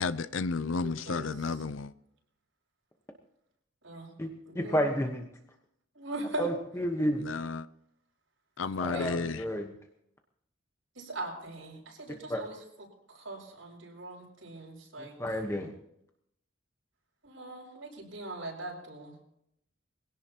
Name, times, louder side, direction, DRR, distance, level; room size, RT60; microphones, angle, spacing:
voice 1, 0.0-1.9 7.2-7.7 8.6-9.4, left 4 dB, 85° left, 0.6 m, -32 dB
voice 2, 0.7-1.6 3.8-4.1 4.5-4.9 5.9-6.6 8.8-9.2 11.0-12.9 13.1-15.4 17.2-19.1, right 2 dB, 85° right, 6.7 m, -41 dB
voice 3, 4.5-5.3 6.4-7.2 8.8-9.7 12.3-12.4 15.0-15.7, equal, 15° left, 1.2 m, -31 dB
22.5 x 17.0 x 3.0 m
head